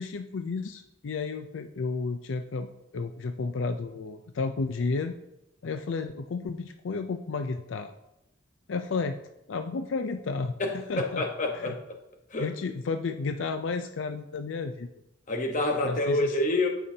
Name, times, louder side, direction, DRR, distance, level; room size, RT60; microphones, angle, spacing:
voice 1, 0.0-5.2 5.6-7.9 8.7-9.1 9.5-10.6 10.9-11.2 11.5-11.7 12.4-14.9 15.8-16.3, left 4 dB, 80° left, 7 dB, 0.5 m, -32 dB
voice 2, 10.6-11.8 12.3-12.5 15.3-16.7, left 2 dB, 45° left, 3 dB, 1.2 m, -27 dB
13.5 x 5.5 x 2.8 m, 0.87 s
head